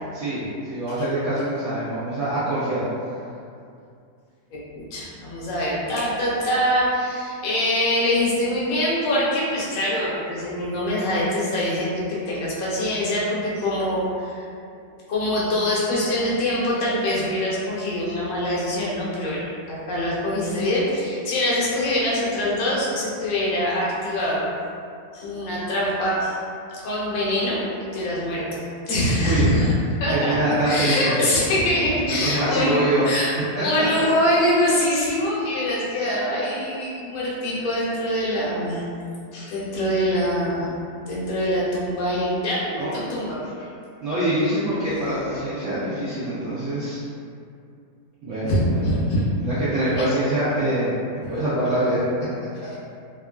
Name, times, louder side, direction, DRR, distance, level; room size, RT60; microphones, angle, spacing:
voice 1, 0.1-0.4 0.7-2.8 29.2-29.4 30.1-31.1 32.0-33.1 33.6-33.7 42.8-43.0 44.0-47.0 48.2-48.9 49.4-52.0, right 1 dB, 70° right, -11 dB, 0.7 m, -24 dB
voice 2, 4.5-14.5 15.1-24.5 25.1-26.4 26.8-28.6 28.9-29.7 30.0-32.8 33.0-33.3 33.6-38.8 39.3-40.7 41.0-43.7 48.5-49.2 50.0-50.1, left 1 dB, 65° left, -7 dB, 1.0 m, -24 dB
2.9 x 2.4 x 2.2 m, 2.4 s
omnidirectional pair, 1.8 m